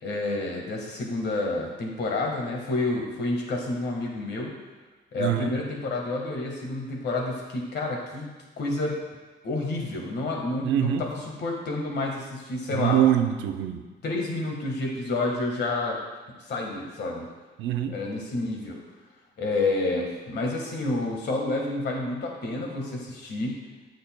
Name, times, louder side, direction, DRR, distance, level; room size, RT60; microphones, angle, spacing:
voice 1, 0.0-4.5 5.1-8.3 8.6-9.0 9.4-13.0 14.0-16.0 16.5-17.3 17.9-18.8 19.4-23.6, left 2 dB, 60° left, 0 dB, 1.6 m, -29 dB
voice 2, 5.2-5.5 10.6-11.0 12.7-13.8 17.6-18.0, right 11 dB, 80° right, 6 dB, 0.6 m, -24 dB
7.8 x 6.6 x 2.2 m, 1.2 s
cardioid pair, 90°, 19 cm